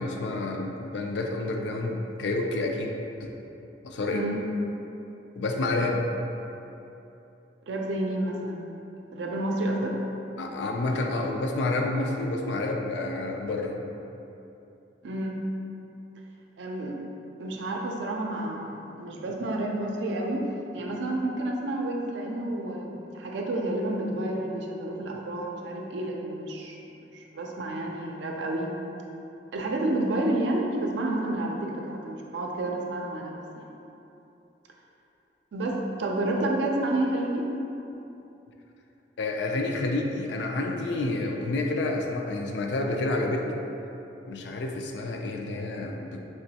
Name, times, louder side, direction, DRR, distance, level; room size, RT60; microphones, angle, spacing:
voice 1, 0.0-3.3 3.8-4.3 5.4-6.1 10.4-13.8 39.2-43.6 44.3-46.2, left 2 dB, 75° left, 2 dB, 0.4 m, -29 dB
voice 2, 4.1-4.4 7.7-8.7 9.1-10.0 15.0-15.4 16.6-17.0 17.4-20.5 20.7-28.7 29.5-33.7 35.5-37.5, right 1 dB, 80° right, 0 dB, 0.4 m, -30 dB
3.4 x 2.9 x 2.8 m, 2.9 s
head